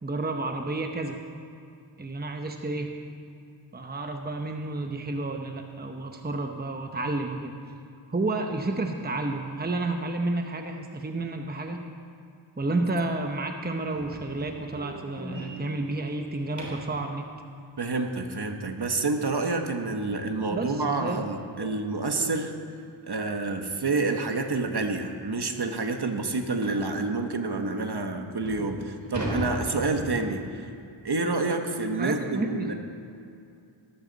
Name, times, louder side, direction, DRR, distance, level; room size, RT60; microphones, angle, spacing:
voice 1, 0.0-1.2 2.0-3.0 3.7-7.6 8.1-11.8 12.6-17.3 20.5-21.2 21.6-21.8 22.2-22.3 32.0-32.7, right 2 dB, 20° right, 4 dB, 0.9 m, -31 dB
sound 1, 13.9-17.0 19.8-19.9 20.4-20.6 20.9-21.0 21.5-21.6 22.7-22.9 23.2-23.4 24.1-24.2 24.5-24.6 25.1-25.2 26.6-26.9 27.6-27.7 28.2-30.5, right 1 dB, 35° right, 3.6 m, -37 dB
voice 2, 17.8-22.5 23.1-30.6 31.0-32.7, right 3 dB, 50° right, 5 dB, 1.3 m, -28 dB
17.5 x 14.0 x 4.1 m, 2.5 s
wide cardioid pair, 80°, 50 cm